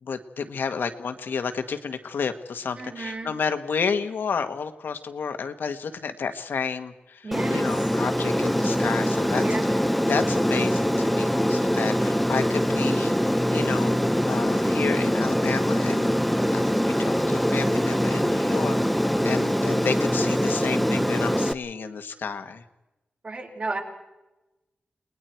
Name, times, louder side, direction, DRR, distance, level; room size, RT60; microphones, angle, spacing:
voice 1, 0.0-9.7 10.1-16.1 16.5-18.8 19.2-22.6, left 5 dB, 85° left, 7 dB, 1.5 m, -31 dB
voice 2, 2.8-3.3 7.2-7.6 9.4-9.6 23.2-23.8, right 3 dB, 45° right, 0 dB, 5.1 m, -32 dB
Aircraft, 7.3-21.5, equal, ahead, 0.6 m, -23 dB
30.0 x 20.0 x 4.6 m, 1.0 s
wide cardioid pair, 110°, 3 cm